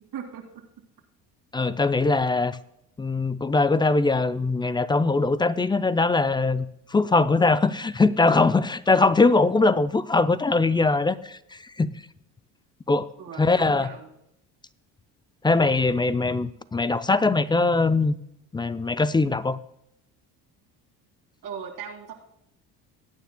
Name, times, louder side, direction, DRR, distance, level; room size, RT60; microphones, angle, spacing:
voice 1, 0.1-0.4 13.2-14.1 21.4-22.1, right 7 dB, 65° right, -1 dB, 2.4 m, -37 dB
voice 2, 1.5-2.6 3.0-6.7 6.9-11.4 11.8-11.9 12.9-13.1 13.4-13.9 15.4-18.1 18.5-19.6, left 3 dB, 10° left, 14 dB, 0.4 m, -21 dB
20.0 x 9.1 x 2.2 m, 0.78 s
supercardioid pair, 85°, 40 cm